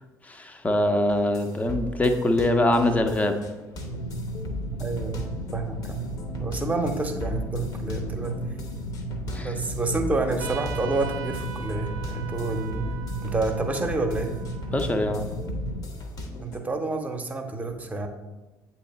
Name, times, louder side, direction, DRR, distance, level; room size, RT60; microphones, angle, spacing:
voice 1, 0.3-3.4 9.3-9.5 14.7-15.2, left 1 dB, 15° left, 6 dB, 0.7 m, -23 dB
sound 1, 1.1-16.6, left 1 dB, 45° left, 0.9 m, -38 dB
sound 2, 3.8-15.9, right 1 dB, 75° left, 0.5 m, -34 dB
voice 2, 4.7-5.2 5.5-8.3 9.3-12.9 13.2-14.3 16.4-18.1, right 3 dB, 15° right, 4 dB, 0.9 m, -29 dB
Trumpet, 10.4-15.5, right 9 dB, 70° right, 0.4 m, -41 dB
8.4 x 2.9 x 4.2 m, 1.1 s
figure-of-eight pair, 55°, 9 cm